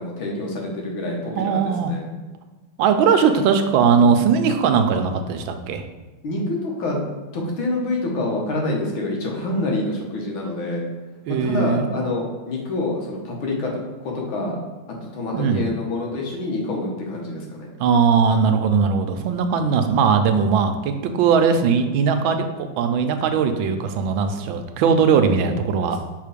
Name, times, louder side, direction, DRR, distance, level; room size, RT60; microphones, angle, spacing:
voice 1, 0.0-2.0 6.2-10.9 11.3-13.7 14.0-14.6 15.1-17.7 25.9-26.0, left 2 dB, 85° left, 0 dB, 2.0 m, -27 dB
voice 2, 1.3-1.9 2.8-5.8 11.3-11.9 15.3-15.7 17.8-26.0, right 6 dB, 90° right, 7 dB, 1.4 m, -19 dB
5.8 x 3.7 x 5.0 m, 1.2 s
omnidirectional pair, 2.1 m